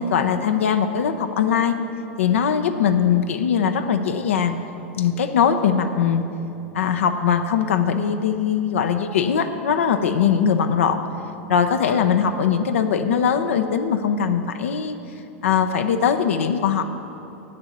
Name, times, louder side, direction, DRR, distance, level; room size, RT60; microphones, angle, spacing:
voice 1, 0.0-1.7 2.2-4.6 5.0-6.2 6.7-11.0 11.5-15.0 15.4-16.8, left 7 dB, 75° left, 7 dB, 0.6 m, -21 dB
8.0 x 6.9 x 8.4 m, 2.8 s
hypercardioid pair, 100°, 7 cm